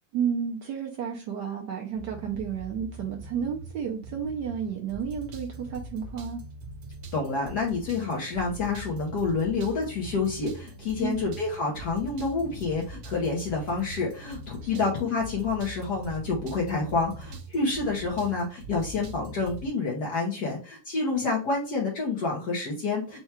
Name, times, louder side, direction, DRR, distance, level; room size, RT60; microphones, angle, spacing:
voice 1, 0.1-6.4 11.0-11.2 14.6-14.7, right 7 dB, 70° right, 0 dB, 1.2 m, -32 dB
sound 1, 2.0-19.7, right 1 dB, 85° right, 1.5 m, -42 dB
voice 2, 7.1-23.2, left 4 dB, 60° left, -2 dB, 1.4 m, -28 dB
4.5 x 2.3 x 4.2 m, 0.36 s
omnidirectional pair, 2.1 m